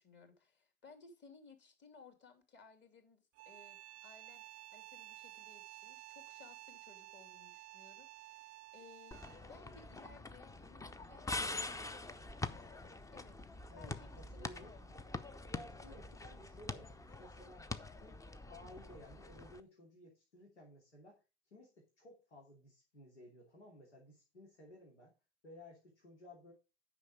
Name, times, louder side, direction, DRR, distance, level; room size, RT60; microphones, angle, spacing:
voice 1, 0.0-15.1, left 4 dB, 35° left, 5 dB, 3.1 m, -61 dB
sound 1, 3.3-9.6, right 17 dB, 40° right, 0.5 m, -53 dB
sound 2, 9.1-19.6, left 3 dB, 10° left, 0.7 m, -45 dB
voice 2, 13.7-14.7 15.5-17.7 18.0-18.2 18.5-21.2 21.5-25.1 25.4-26.5, left 1 dB, 85° left, -2 dB, 2.9 m, -57 dB
9.7 x 5.8 x 5.1 m, 0.29 s
figure-of-eight pair, 75°, 33 cm